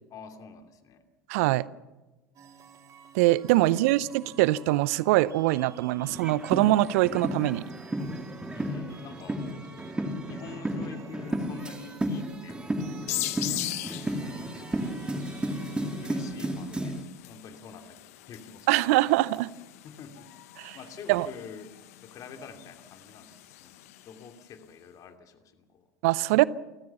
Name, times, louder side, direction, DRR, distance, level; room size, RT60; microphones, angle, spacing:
voice 1, 0.1-1.0 3.5-4.0 8.5-9.4 10.3-14.1 14.4-15.0 16.0-18.0 18.3-18.8 19.8-20.3 20.7-21.7 22.0-23.3 23.6-23.7 24.1-25.8, left 6 dB, 45° left, 6 dB, 2.8 m, -47 dB
voice 2, 1.3-1.7 3.1-7.6 18.7-19.5 20.6-20.8 21.1-21.3 26.0-26.4, right 17 dB, 65° right, 20 dB, 0.6 m, -23 dB
sound 1, 2.3-16.3, right 6 dB, 40° right, 3.1 m, -52 dB
sound 2, 6.0-17.0, right 1 dB, 10° right, 2.5 m, -33 dB
sound 3, 13.1-24.4, left 16 dB, 70° left, 1.1 m, -40 dB
29.0 x 14.0 x 7.1 m, 1.1 s
hypercardioid pair, 75°, 8 cm